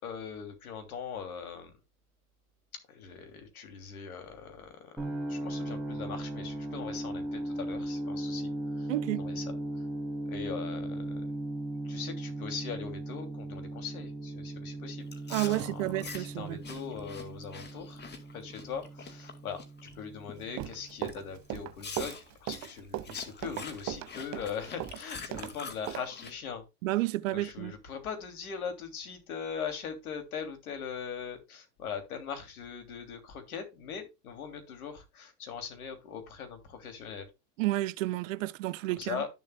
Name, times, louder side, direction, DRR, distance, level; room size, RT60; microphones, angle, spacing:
voice 1, 0.0-1.7 2.9-5.0 5.3-8.9 9.2-9.8 10.3-11.3 11.8-15.1 15.5-18.0 18.3-19.6 19.9-26.6 27.3-37.3 38.9-39.3, left 6 dB, 65° left, 3.1 m, -40 dB
sound 1, 5.0-20.9, right 1 dB, 5° right, 3.4 m, -38 dB
voice 2, 8.9-9.2 15.3-16.6 26.8-27.7 37.6-39.2, right 18 dB, 55° right, 0.7 m, -31 dB
Chewing mastication, 15.1-19.9 20.3-20.6 21.1-21.2 21.8-26.3, left 5 dB, 20° left, 2.1 m, -45 dB
Run, 20.4-25.5 25.9-26.0, right 14 dB, 35° right, 1.0 m, -37 dB
12.0 x 7.3 x 2.3 m
figure-of-eight pair, 85°, 46 cm